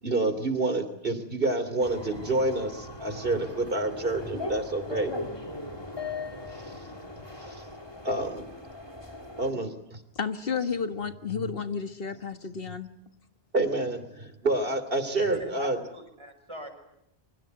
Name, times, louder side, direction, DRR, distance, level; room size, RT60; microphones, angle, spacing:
voice 1, 0.0-5.1 8.0-8.4 9.4-10.0 13.5-15.8, right 2 dB, 60° right, 11 dB, 3.2 m, -28 dB
sound 1, 1.8-9.5, left 2 dB, 25° left, 3.2 m, -39 dB
voice 2, 10.2-12.9, left 6 dB, 65° left, 8 dB, 1.9 m, -32 dB
voice 3, 15.3-16.7, equal, 30° right, 4 dB, 6.2 m, -42 dB
27.5 x 25.0 x 8.2 m, 0.79 s
omnidirectional pair, 1.0 m